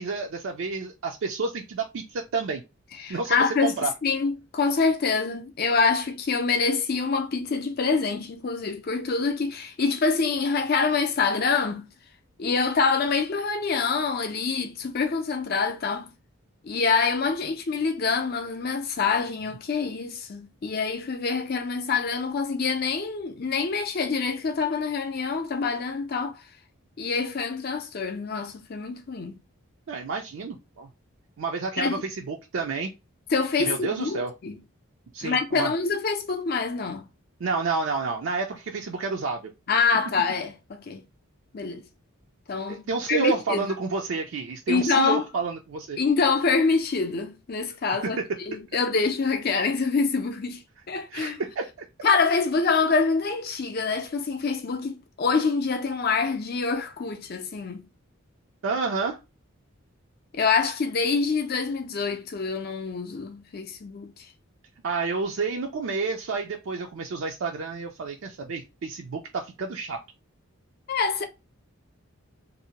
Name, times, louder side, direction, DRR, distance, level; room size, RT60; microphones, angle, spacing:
voice 1, 0.0-2.6 3.1-3.9 29.9-30.9 31.4-32.9 33.6-34.3 35.1-35.7 37.4-39.4 42.7-46.0 48.0-48.3 51.1-51.7 58.6-59.2 64.8-70.0, right 4 dB, 65° right, 0.4 m, -29 dB
voice 2, 3.0-3.8 4.0-11.9 12.4-16.1 16.6-26.4 27.0-29.4 31.8-32.0 33.3-34.6 35.2-37.1 39.7-41.0 41.5-41.8 42.5-43.7 44.7-45.2 46.0-48.2 48.5-50.6 50.9-51.4 52.0-57.8 60.3-64.3 70.9-71.2, left 4 dB, 45° left, 0.4 m, -26 dB
2.6 x 2.1 x 2.8 m
head